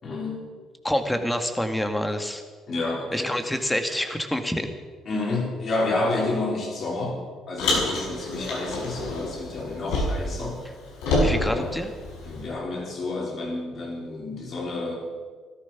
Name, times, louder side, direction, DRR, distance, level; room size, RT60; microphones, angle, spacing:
voice 1, 0.0-0.4 2.7-3.3 5.1-7.2 7.5-10.6 11.5-11.7 12.2-15.0, left 2 dB, 50° left, -1 dB, 5.2 m, -29 dB
voice 2, 0.8-2.4 3.1-4.7 11.2-11.9, left 1 dB, 10° left, 7 dB, 2.0 m, -27 dB
Car, 7.6-10.4 10.6-12.5, left 1 dB, 85° left, 5.8 m, -27 dB
16.5 x 13.0 x 6.1 m, 1.5 s
supercardioid pair, 80°, 0 cm